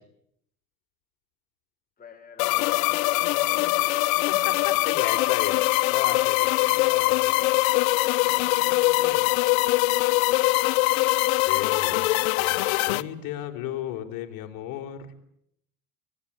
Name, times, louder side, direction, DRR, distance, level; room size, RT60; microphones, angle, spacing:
voice 1, 2.0-4.2 9.8-10.6, left 6 dB, 20° left, 2 dB, 5.6 m, -50 dB
sound 1, 2.4-13.0, left 20 dB, 85° left, 1.1 m, -22 dB
voice 2, 4.4-7.5 8.8-9.3 11.5-15.1, left 11 dB, 60° left, 4 dB, 4.1 m, -36 dB
25.0 x 20.0 x 9.9 m, 0.73 s
supercardioid pair, 130°, 40 cm